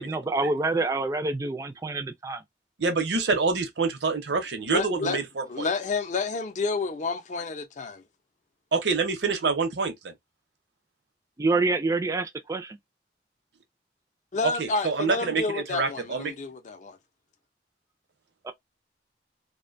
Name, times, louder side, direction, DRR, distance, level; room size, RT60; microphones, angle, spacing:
voice 1, 0.0-2.4 11.4-12.8 18.4-18.5, right 3 dB, 20° right, 0.3 m, -27 dB
voice 2, 2.8-5.7 8.7-10.1 14.4-16.4, right 4 dB, 75° right, 0.7 m, -26 dB
voice 3, 4.7-5.2 5.5-8.0 14.3-17.0, left 4 dB, 45° left, 0.5 m, -30 dB
2.5 x 2.1 x 2.5 m
head